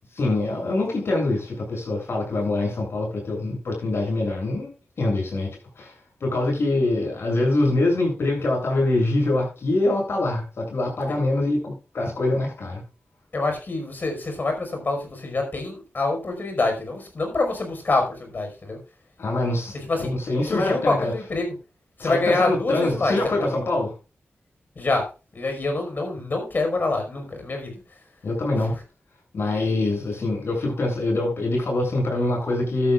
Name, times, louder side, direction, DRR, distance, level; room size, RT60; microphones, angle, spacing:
voice 1, 0.1-4.7 5.0-5.5 5.8-5.9 6.2-12.8 19.2-21.1 22.0-23.9 28.2-28.7 29.3-32.9, left 2 dB, 70° left, 7.8 m, -24 dB
voice 2, 13.3-18.8 19.9-20.2 20.4-21.5 22.0-23.5 24.8-25.1 25.3-27.7, left 2 dB, 50° left, 5.3 m, -26 dB
14.5 x 12.5 x 2.5 m
wide cardioid pair, 130°, 4 cm